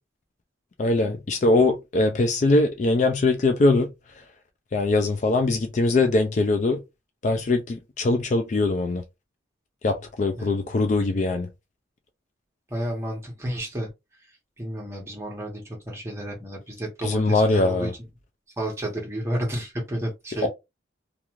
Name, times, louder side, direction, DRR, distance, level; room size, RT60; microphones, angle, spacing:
voice 1, 0.8-3.9 4.7-6.8 7.2-9.0 9.8-11.5 17.0-17.9, left 2 dB, 40° left, 0.3 m, -22 dB
voice 2, 12.7-13.9 14.3-17.9 18.6-20.5, right 1 dB, 15° right, 1.0 m, -31 dB
2.4 x 2.4 x 3.0 m
head